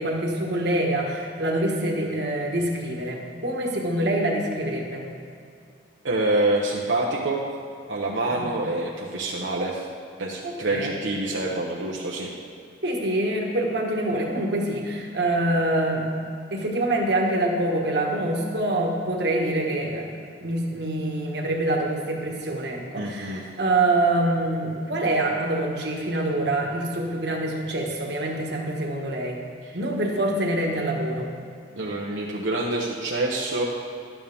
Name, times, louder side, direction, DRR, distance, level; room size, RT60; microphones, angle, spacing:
voice 1, 0.0-5.0 8.3-8.5 10.4-10.9 12.8-16.0 16.5-20.1 20.4-29.4 29.7-31.3, right 1 dB, 60° right, 0 dB, 1.5 m, -25 dB
voice 2, 6.0-7.4 7.9-9.8 10.2-12.3 23.0-23.4 31.7-33.6, right 2 dB, 80° right, -4 dB, 1.0 m, -26 dB
12.5 x 9.4 x 3.5 m, 2.4 s
head